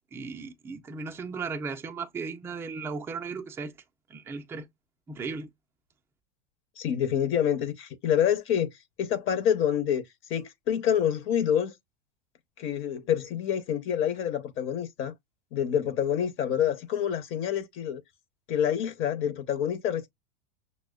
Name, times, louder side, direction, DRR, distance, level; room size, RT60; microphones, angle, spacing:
voice 1, 0.1-3.7 4.1-4.7 5.1-5.5, right 4 dB, 5° right, 0.3 m, -36 dB
voice 2, 6.8-8.7 9.0-10.0 10.3-11.7 12.6-15.1 15.5-18.0 18.5-20.1, left 9 dB, 35° left, 0.7 m, -27 dB
5.9 x 2.1 x 2.2 m
hypercardioid pair, 105°, 34 cm